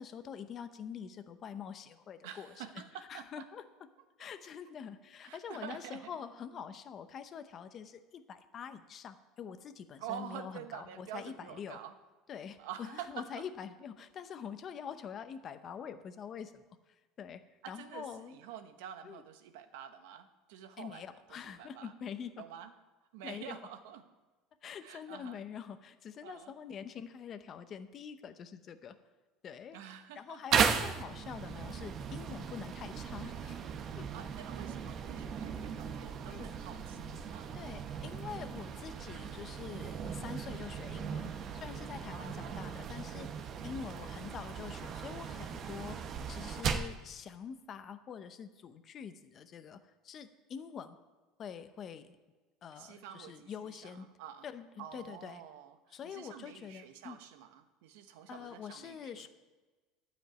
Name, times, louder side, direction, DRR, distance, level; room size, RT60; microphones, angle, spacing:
voice 1, 0.0-2.6 3.1-3.6 4.2-11.8 12.3-17.4 17.7-18.4 19.0-19.2 20.8-22.4 23.2-23.6 24.6-29.0 29.4-29.8 30.1-33.7 33.9-34.1 36.3-36.5 37.5-43.4 43.6-51.0 51.4-52.2 52.6-54.1 54.4-55.4 55.9-57.2 58.3-59.3, left 7 dB, 30° left, 10 dB, 0.8 m, -45 dB
voice 2, 2.2-3.5 5.2-6.1 10.0-11.9 12.6-13.3 17.6-21.9 22.4-22.7 23.1-24.0 24.8-25.4 26.2-26.5 29.7-30.4 34.1-37.6 42.1-43.0 43.6-44.2 52.7-54.5 54.8-59.3, right 9 dB, 85° right, 8 dB, 1.1 m, -48 dB
sound 1, 30.5-47.0, right 7 dB, 40° right, 0.9 m, -37 dB
12.5 x 5.2 x 9.0 m, 1.2 s
cardioid pair, 150°, 0 cm